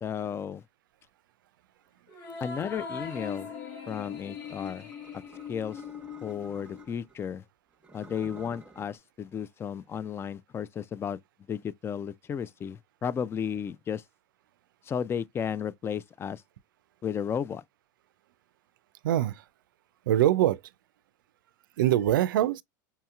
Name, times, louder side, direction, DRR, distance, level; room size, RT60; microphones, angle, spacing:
voice 1, 0.0-0.6 2.4-3.5 3.9-4.9 5.5-5.8 6.2-7.4 7.9-11.2 11.5-14.0 14.9-16.4 17.0-17.6, left 7 dB, 25° left, 0.4 m, -33 dB
sound 1, 2.1-6.8, left 6 dB, 80° left, 1.6 m, -41 dB
sound 2, 4.4-7.2 7.7-9.0, right 3 dB, 10° right, 0.9 m, -53 dB
voice 2, 19.0-19.4 20.1-20.6 21.8-22.6, right 12 dB, 85° right, 0.4 m, -23 dB
5.6 x 2.8 x 2.3 m
hypercardioid pair, 100°, 11 cm